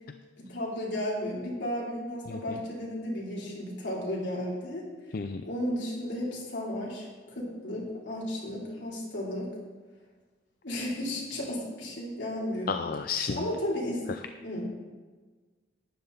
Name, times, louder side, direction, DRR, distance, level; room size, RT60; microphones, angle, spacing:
voice 1, 0.4-4.9 5.4-9.5 10.6-12.7 13.4-14.1 14.4-14.7, left 1 dB, 75° left, -4 dB, 3.6 m, -34 dB
voice 2, 5.1-5.4 12.7-13.5, left 5 dB, 55° left, 8 dB, 0.4 m, -32 dB
12.0 x 10.0 x 4.1 m, 1.4 s
head